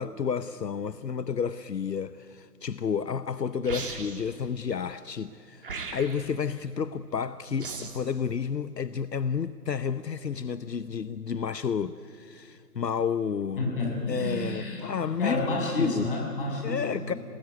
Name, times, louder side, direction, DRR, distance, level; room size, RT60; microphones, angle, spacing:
voice 1, 0.0-13.6 14.1-15.5 15.7-16.1 16.6-17.1, left 6 dB, 75° left, 14 dB, 0.9 m, -31 dB
sound 1, 3.6-4.3 5.6-6.3 7.6-8.1, right 4 dB, 30° right, 2.6 m, -37 dB
voice 2, 13.6-14.9 15.2-17.2, left 2 dB, 30° left, -2 dB, 7.4 m, -30 dB
28.5 x 19.0 x 9.6 m, 2.4 s
figure-of-eight pair, 160°, 50 cm